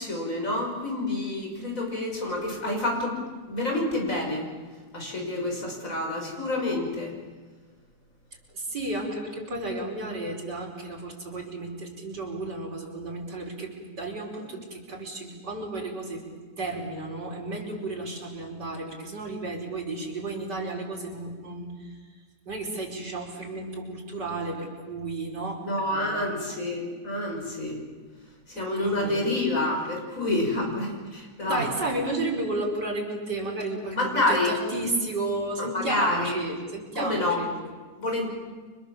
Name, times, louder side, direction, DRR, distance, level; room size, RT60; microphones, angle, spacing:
voice 1, 0.0-3.2 3.5-4.5 4.9-7.1 25.6-27.8 28.5-31.7 33.9-34.6 35.7-36.4 37.0-37.4 38.0-38.3, left 2 dB, 45° left, 1 dB, 6.4 m, -28 dB
voice 2, 8.5-16.2 16.6-22.0 22.5-26.6 28.5-29.3 31.4-37.5, right 2 dB, 65° right, 0 dB, 5.9 m, -33 dB
30.0 x 25.5 x 7.5 m, 1.4 s
omnidirectional pair, 1.9 m